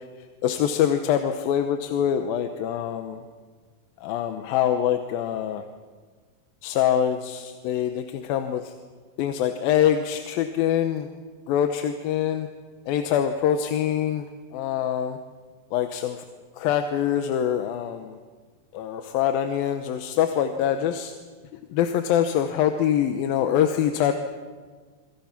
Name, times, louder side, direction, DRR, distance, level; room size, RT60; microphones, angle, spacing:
voice 1, 0.4-3.2 4.0-5.6 6.6-8.7 9.2-11.1 11.5-12.5 12.9-14.3 14.5-15.2 15.7-16.2 16.6-18.2 18.7-21.1 21.7-24.1, left 9 dB, 80° left, 7 dB, 2.8 m, -24 dB
28.0 x 24.5 x 5.9 m, 1.5 s
omnidirectional pair, 4.1 m